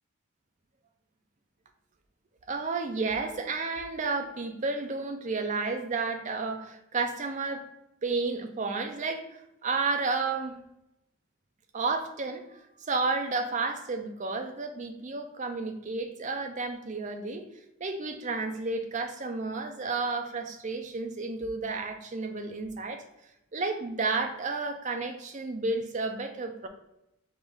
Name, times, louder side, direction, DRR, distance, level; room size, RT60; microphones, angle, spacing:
voice 1, 2.5-7.7 8.0-10.6 11.7-17.5 17.8-23.0 23.5-26.7, right 3 dB, 35° right, 6 dB, 0.4 m, -32 dB
5.1 x 2.5 x 3.5 m, 0.87 s
head